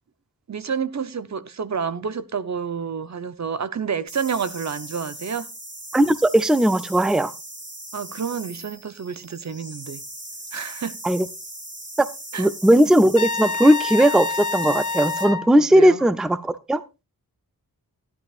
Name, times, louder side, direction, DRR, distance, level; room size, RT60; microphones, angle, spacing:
voice 1, 0.5-5.5 7.9-10.0 10.5-11.0 12.3-12.5 15.5-16.1, right 6 dB, 50° right, 0.8 m, -29 dB
sound 1, 4.1-15.3, right 1 dB, 30° right, 3.8 m, -39 dB
voice 2, 5.9-7.3 11.0-11.3 12.0-12.1 12.4-16.8, right 1 dB, ahead, 0.5 m, -17 dB
Trumpet, 13.2-15.5, left 4 dB, 60° left, 1.0 m, -27 dB
13.0 x 10.5 x 2.4 m
wide cardioid pair, 85°, 35 cm